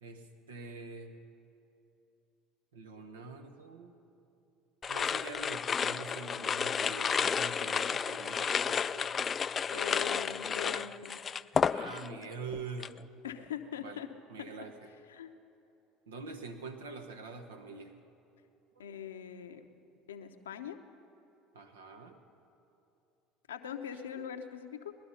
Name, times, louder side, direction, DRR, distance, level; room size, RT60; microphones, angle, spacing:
voice 1, 0.0-1.1 2.7-3.9 4.9-9.2 10.2-10.4 11.7-12.9 13.8-14.0 14.3-14.9 16.1-17.9 21.5-22.2 23.9-24.3, right 4 dB, 85° right, 5 dB, 1.2 m, -45 dB
sound 1, 4.8-12.2 12.5-13.0, left 6 dB, 35° left, 0.3 m, -32 dB
voice 2, 9.7-11.2 13.2-14.1 15.1-15.3 18.8-19.6 20.1-20.8 23.5-24.9, left 8 dB, 85° left, 7 dB, 0.8 m, -42 dB
19.5 x 11.5 x 5.6 m, 2.9 s
hypercardioid pair, 70°, 0 cm